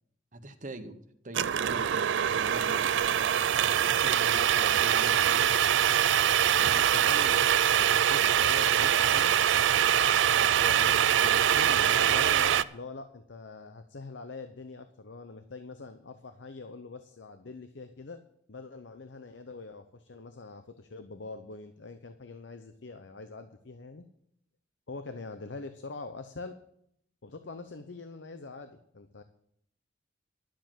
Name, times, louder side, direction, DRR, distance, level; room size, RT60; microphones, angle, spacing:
voice 1, 0.3-2.1 2.4-3.0 3.9-5.5 6.6-6.8, right 1 dB, 45° right, 6 dB, 1.1 m, -42 dB
sound 1, 1.3-12.6, right 9 dB, 80° right, 0.4 m, -24 dB
voice 2, 6.5-9.4 10.3-18.2 18.5-24.0 24.9-26.6 27.2-29.2, left 3 dB, 75° left, 9 dB, 0.8 m, -43 dB
11.5 x 7.5 x 7.4 m, 0.71 s
head